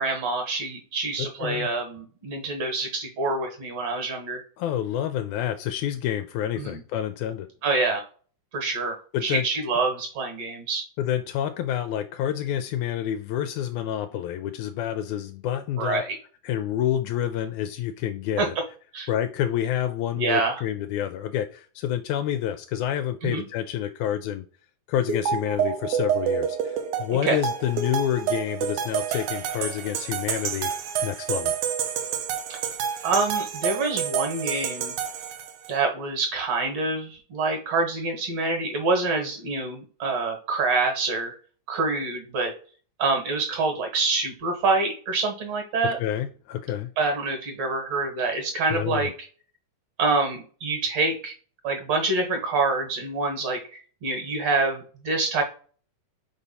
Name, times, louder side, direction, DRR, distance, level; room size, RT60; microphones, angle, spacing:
voice 1, 0.0-4.4 6.6-6.8 7.6-8.0 8.5-10.8 15.8-16.2 18.4-18.5 18.9-19.1 20.1-20.6 23.2-23.4 27.2-27.4 32.5-32.6 33.0-34.9 35.7-41.4 41.7-42.5 43.0-46.0 47.0-49.1 50.0-51.3 51.6-55.4, right 3 dB, 60° right, 3 dB, 2.6 m, -26 dB
voice 2, 1.2-1.7 4.6-7.5 9.1-9.5 11.0-16.0 16.4-18.6 19.1-24.5 24.9-30.7 31.0-31.5 46.0-46.9 48.7-49.1, left 10 dB, 80° left, 8 dB, 1.9 m, -28 dB
sound 1, 25.1-35.7, right 8 dB, 80° right, 2.2 m, -28 dB
5.1 x 4.0 x 5.4 m, 0.41 s
omnidirectional pair, 3.5 m